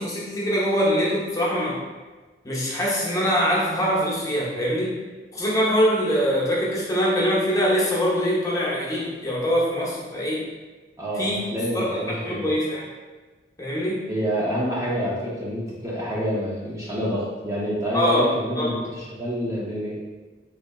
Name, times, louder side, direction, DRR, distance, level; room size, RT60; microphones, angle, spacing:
voice 1, 0.0-1.8 2.4-5.0 5.3-10.4 11.2-11.4 11.7-12.8 13.6-14.0 17.9-18.3 18.6-18.7, equal, 20° left, -6 dB, 0.8 m, -23 dB
voice 2, 11.0-12.5 14.1-20.0, equal, 20° right, -6 dB, 0.5 m, -27 dB
3.7 x 3.2 x 2.3 m, 1.3 s
head